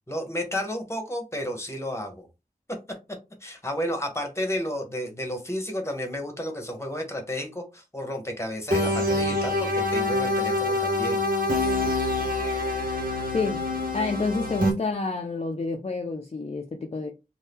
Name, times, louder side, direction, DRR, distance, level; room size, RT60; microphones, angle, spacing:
voice 1, 0.1-2.3 3.4-11.2, equal, 15° left, 1.0 m, -32 dB
sound 1, 8.7-14.7, left 2 dB, 65° right, 1.0 m, -25 dB
voice 2, 13.9-17.1, left 3 dB, 45° left, 0.4 m, -29 dB
2.7 x 2.2 x 3.4 m
wide cardioid pair, 50°, 16 cm